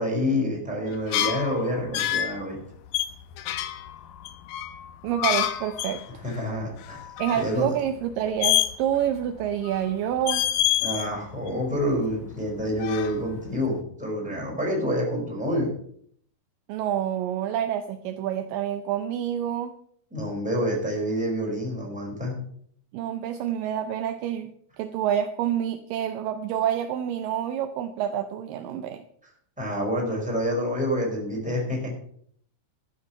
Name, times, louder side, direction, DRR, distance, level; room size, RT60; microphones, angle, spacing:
voice 1, 0.0-2.6 6.2-7.7 10.8-15.7 20.1-22.4 29.6-32.0, equal, ahead, -3 dB, 4.2 m, -28 dB
sound 1, 0.9-2.4 2.9-6.0 6.3-6.4 6.7-7.6 8.4-9.1 9.4-9.9 10.2-11.1 11.4-12.5 12.8-13.5, left 12 dB, 75° left, 2.1 m, -27 dB
voice 2, 5.0-6.2 7.2-10.4 16.7-19.7 22.9-24.5 24.8-29.0, right 10 dB, 85° right, 8 dB, 2.0 m, -28 dB
12.5 x 8.5 x 5.6 m, 0.63 s
omnidirectional pair, 4.7 m